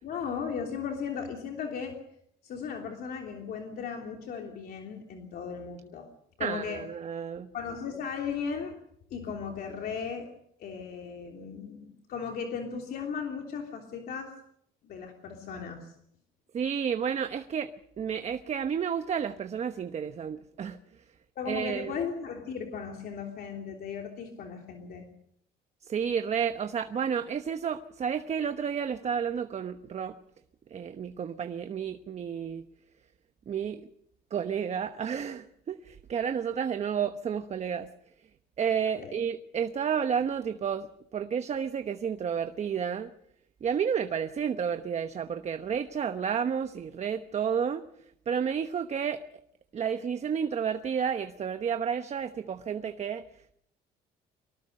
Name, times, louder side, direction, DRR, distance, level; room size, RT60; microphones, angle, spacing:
voice 1, 0.0-2.0 2.4-6.1 6.4-6.8 7.5-8.7 9.1-10.3 10.6-14.3 14.8-15.9 21.3-25.1 39.0-39.1, left 6 dB, 60° left, 2 dB, 3.2 m, -36 dB
voice 2, 6.4-7.5 16.5-20.8 21.5-21.9 25.8-30.2 30.7-32.6 33.5-33.9 34.3-37.9 38.6-43.1 43.6-47.8 48.3-49.2 49.7-53.2, right 7 dB, 40° right, 8 dB, 1.1 m, -31 dB
24.0 x 18.5 x 6.6 m, 0.72 s
cardioid pair, 110°, 17 cm